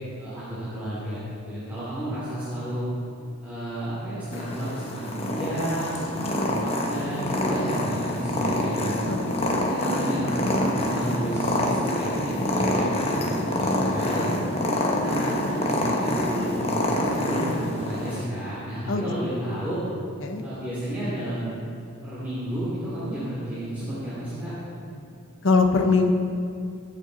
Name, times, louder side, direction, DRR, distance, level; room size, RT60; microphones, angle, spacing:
voice 1, 0.2-2.8 3.4-8.9 9.6-14.3 14.8-19.8 20.4-21.5 22.0-24.5, right 1 dB, 10° right, -12 dB, 2.7 m, -31 dB
Purr, 4.3-18.2, left 1 dB, 25° left, 1.2 m, -26 dB
voice 2, 9.1-9.5 18.9-19.1 20.2-20.4 25.4-26.1, left 4 dB, 60° left, 4 dB, 1.0 m, -22 dB
21.0 x 8.0 x 4.0 m, 2.4 s
head